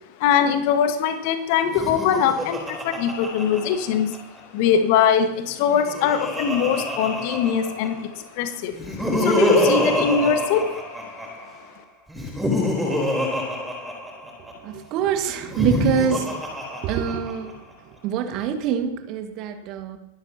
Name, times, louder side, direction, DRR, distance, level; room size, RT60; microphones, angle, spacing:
voice 1, 0.2-4.2 4.5-8.8 9.2-10.8, left 7 dB, 45° left, 9 dB, 1.4 m, -22 dB
Laughter, 1.6-4.4 5.5-8.1 8.7-11.5 12.1-14.5 15.4-17.5, left 1 dB, 5° right, 3.5 m, -26 dB
voice 2, 14.6-16.3 16.8-20.0, right 8 dB, 40° right, 7 dB, 1.6 m, -25 dB
22.5 x 12.0 x 2.8 m, 0.81 s
figure-of-eight pair, 90°, 0 cm